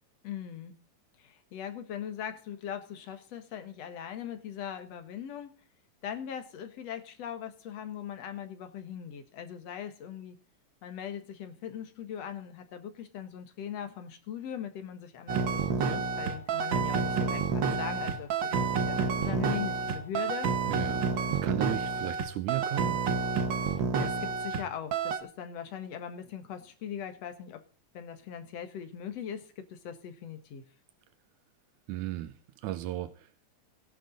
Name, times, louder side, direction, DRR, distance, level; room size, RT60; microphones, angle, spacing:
voice 1, 0.2-0.8 1.2-5.5 6.0-10.4 10.8-20.5 23.9-27.6 27.9-30.6, left 9 dB, 60° left, 8 dB, 2.5 m, -40 dB
sound 1, 15.3-24.6 24.9-25.2, right 5 dB, 55° right, 1.5 m, -29 dB
voice 2, 20.7-23.0 31.9-33.3, right 14 dB, 85° right, 12 dB, 2.3 m, -35 dB
17.5 x 10.5 x 3.9 m, 0.39 s
omnidirectional pair, 3.5 m